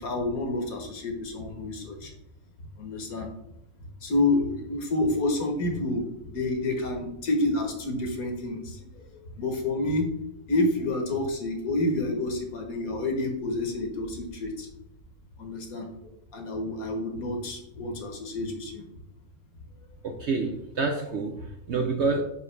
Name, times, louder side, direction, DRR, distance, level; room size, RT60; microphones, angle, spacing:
voice 1, 0.0-2.1 2.8-3.3 4.0-8.8 9.4-10.1 10.5-14.7 15.4-15.9 16.3-18.8, left 2 dB, 65° left, 3 dB, 1.6 m, -28 dB
voice 2, 20.0-22.2, right 3 dB, 60° right, 4 dB, 0.7 m, -28 dB
5.4 x 5.3 x 3.2 m, 0.84 s
omnidirectional pair, 1.7 m